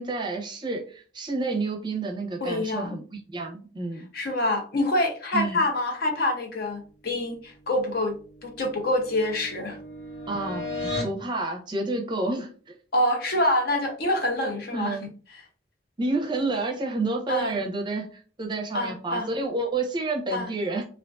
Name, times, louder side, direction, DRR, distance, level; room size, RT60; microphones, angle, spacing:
voice 1, 0.0-4.1 5.3-5.6 10.3-12.8 14.7-15.0 16.0-20.8, right 2 dB, 25° right, 1 dB, 0.5 m, -29 dB
voice 2, 2.4-3.0 4.1-8.1 8.4-9.8 12.9-15.0 15.3-15.4 17.3-17.6 18.7-19.3 20.3-20.5, left 1 dB, 60° left, 3 dB, 0.6 m, -26 dB
sound 1, 8.0-11.2, left 2 dB, 80° left, 1.5 m, -35 dB
2.4 x 2.4 x 2.3 m, 0.39 s
head